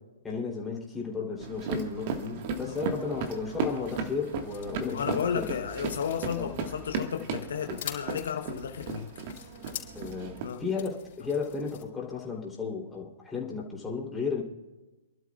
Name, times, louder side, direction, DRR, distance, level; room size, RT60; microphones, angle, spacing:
voice 1, 0.2-5.6 6.3-6.5 7.7-7.8 9.9-14.4, left 5 dB, 10° left, 3.5 m, -34 dB
sound 1, 1.4-10.5, right 4 dB, 40° right, 1.7 m, -36 dB
sound 2, 2.7-11.8, left 11 dB, 50° left, 4.7 m, -47 dB
voice 2, 4.9-9.1 10.4-10.6, left 7 dB, 65° left, 1.1 m, -33 dB
28.5 x 12.0 x 2.5 m
figure-of-eight pair, 125°, 0 cm